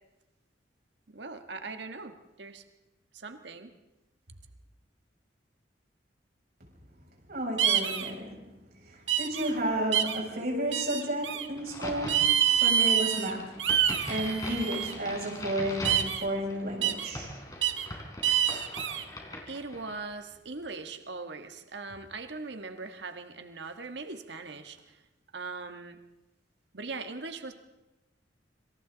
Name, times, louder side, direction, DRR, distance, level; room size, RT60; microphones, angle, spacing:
voice 1, 1.1-2.6 3.1-3.7 19.5-25.0 25.3-26.0 26.7-27.5, right 3 dB, 70° right, 7 dB, 1.5 m, -40 dB
voice 2, 7.3-8.4 8.8-13.6 14.0-17.3, right 1 dB, 55° right, -2 dB, 7.2 m, -32 dB
sound 1, 7.6-8.1 9.1-9.5 9.9-10.2 10.7-11.5 12.1-13.3 13.6-14.9 15.8-16.2 16.8-17.1 17.6-17.9 18.2-19.0, right 9 dB, 90° right, 1.7 m, -26 dB
Crack, 11.6-20.1, left 1 dB, 20° left, 3.9 m, -41 dB
27.0 x 27.0 x 4.0 m, 1.0 s
head